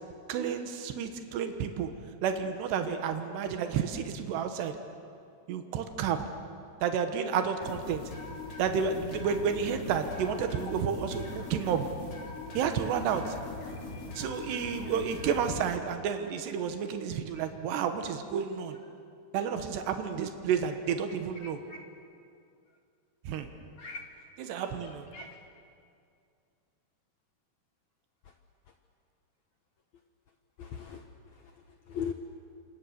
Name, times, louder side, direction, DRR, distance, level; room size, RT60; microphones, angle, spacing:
voice 1, 0.3-1.9 2.2-4.8 5.5-6.2 6.8-8.0 8.6-11.9 12.6-13.4 14.2-18.8 19.3-21.6 23.3-23.5 24.5-25.1, right 7 dB, 90° right, 7 dB, 3.4 m, -31 dB
sound 1, 7.6-15.6, left 3 dB, 55° left, 5.0 m, -41 dB
voice 2, 13.6-14.2 17.3-17.5 21.3-21.8 23.8-24.0 24.6-25.3 28.2-28.3 30.6-31.0 31.3-31.5 31.9-32.1, left 6 dB, 80° left, 5 dB, 1.6 m, -41 dB
27.5 x 26.5 x 6.8 m, 2.4 s
omnidirectional pair, 4.8 m